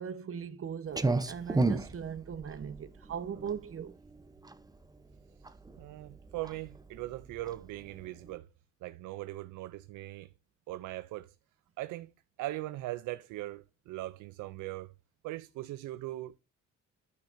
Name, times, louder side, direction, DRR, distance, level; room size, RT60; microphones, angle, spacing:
voice 1, 0.0-3.9, right 7 dB, 45° right, 1.1 m, -39 dB
Clock, 0.9-8.4, right 3 dB, 10° right, 0.8 m, -34 dB
voice 2, 5.8-8.5 8.8-10.3 10.7-11.4 11.8-12.1 12.4-14.9 15.2-16.4, right 16 dB, 85° right, 0.5 m, -40 dB
10.0 x 9.3 x 2.6 m
cardioid pair, 90°, 30 cm